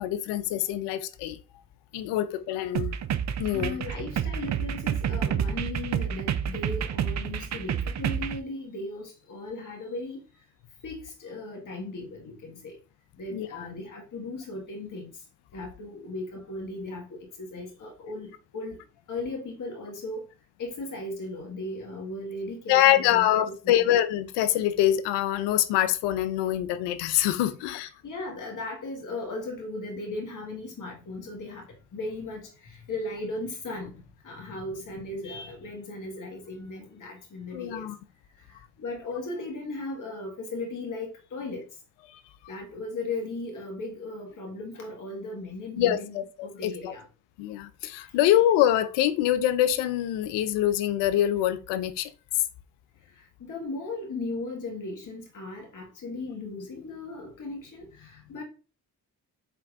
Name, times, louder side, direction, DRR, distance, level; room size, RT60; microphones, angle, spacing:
voice 1, 0.0-1.4 1.9-3.0 3.4-3.8 13.3-13.7 22.7-27.9 37.5-38.0 45.8-46.9 47.4-52.1, left 12 dB, 80° left, 0.5 m, -25 dB
sound 1, 2.7-8.4, right 8 dB, 45° right, 0.5 m, -29 dB
voice 2, 3.5-10.2 10.8-12.7 13.2-15.1 15.5-18.8 19.1-20.3 20.6-23.8 27.4-31.7 31.9-37.9 38.5-41.6 42.5-47.0 53.2-58.4, left 2 dB, 50° left, 1.7 m, -37 dB
4.7 x 3.4 x 2.5 m
hypercardioid pair, 45°, 41 cm